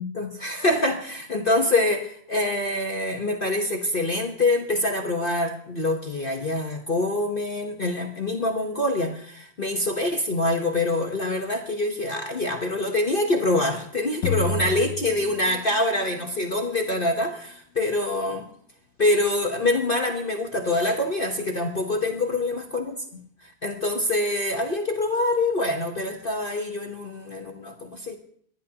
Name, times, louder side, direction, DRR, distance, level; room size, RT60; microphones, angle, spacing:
voice 1, 0.0-18.5 19.0-22.9 23.4-28.2, left 2 dB, 35° left, 2 dB, 1.0 m, -25 dB
sound 1, 14.2-16.0, left 2 dB, 60° left, 1.2 m, -29 dB
26.0 x 11.0 x 2.9 m, 0.62 s
omnidirectional pair, 2.1 m